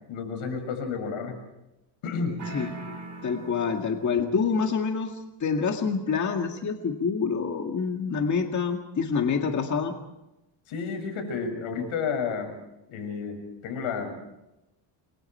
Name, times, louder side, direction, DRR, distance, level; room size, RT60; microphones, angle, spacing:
voice 1, 0.1-1.4 2.0-2.4 10.7-12.6 12.9-14.1, left 5 dB, 85° left, 6 dB, 6.5 m, -31 dB
sound 1, 2.4-4.3, right 3 dB, 35° right, 5.3 m, -41 dB
voice 2, 2.5-3.0 3.2-9.9, left 5 dB, 35° left, 3 dB, 2.1 m, -27 dB
28.5 x 23.5 x 4.5 m, 0.95 s
cardioid pair, 125°, 48 cm